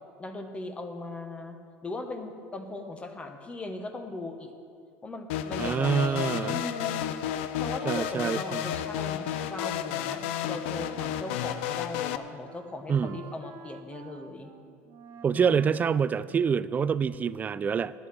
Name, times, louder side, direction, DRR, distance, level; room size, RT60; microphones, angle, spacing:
voice 1, 0.2-1.6 1.8-4.5 5.0-7.0 7.5-14.5 15.3-15.9, left 2 dB, 20° left, 6 dB, 1.2 m, -39 dB
sound 1, 5.3-12.2, left 10 dB, 85° left, 0.5 m, -32 dB
voice 2, 5.6-6.5 7.9-8.6 12.9-13.2 15.2-17.9, right 6 dB, 25° right, 16 dB, 0.3 m, -26 dB
Wind instrument woodwind instrument, 9.4-16.9, right 7 dB, 60° right, 0.9 m, -49 dB
11.0 x 9.5 x 6.2 m, 2.3 s
supercardioid pair, 110°, 6 cm